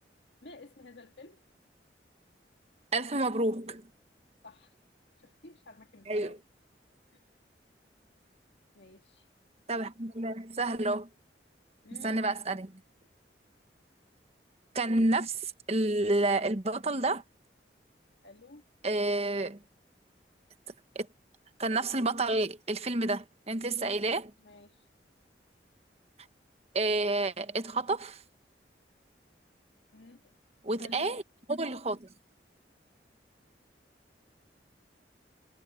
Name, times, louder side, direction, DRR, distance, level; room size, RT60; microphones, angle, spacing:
voice 1, 0.4-1.4 4.4-4.8 5.2-6.4 7.1-7.2 8.7-9.3 11.8-12.3 18.2-18.6 24.4-24.9 29.9-30.2 30.7-31.1, left 2 dB, 70° left, 1.7 m, -52 dB
voice 2, 2.9-3.9 6.1-6.4 9.7-11.1 12.0-12.8 14.7-17.2 18.8-19.6 20.9-21.1 21.6-24.3 26.7-28.2 30.6-31.2 31.5-32.1, right 2 dB, 35° right, 1.1 m, -29 dB
head